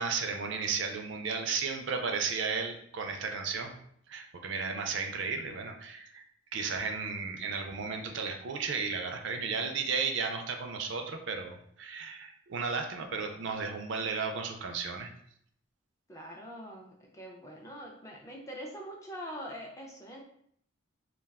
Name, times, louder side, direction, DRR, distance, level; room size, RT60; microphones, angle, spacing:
voice 1, 0.0-3.7 4.1-6.2 6.5-15.1, right 5 dB, 60° right, 4 dB, 0.3 m, -34 dB
voice 2, 16.1-20.2, equal, 15° left, 0 dB, 0.3 m, -43 dB
2.3 x 2.2 x 3.4 m, 0.67 s
head